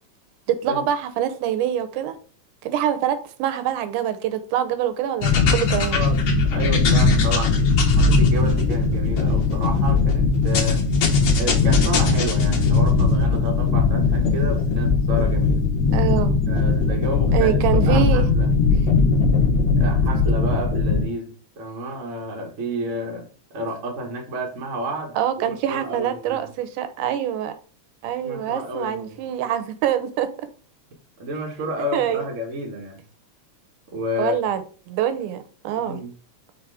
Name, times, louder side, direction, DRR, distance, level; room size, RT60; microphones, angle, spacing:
voice 1, 0.5-2.2 2.6-6.0 15.9-16.4 17.3-18.3 25.1-27.6 28.0-30.3 31.9-32.3 34.2-34.6 34.9-36.0, right 10 dB, 85° right, 2.3 m, -25 dB
sound 1, 5.2-21.0, left 4 dB, 65° left, 1.1 m, -19 dB
voice 2, 5.9-6.2 6.5-10.9 11.4-15.7 16.5-18.6 19.8-26.4 28.2-29.2 31.2-33.0 33.9-34.4 35.8-36.1, equal, 45° right, 0.9 m, -30 dB
4.9 x 4.0 x 4.7 m
omnidirectional pair, 3.5 m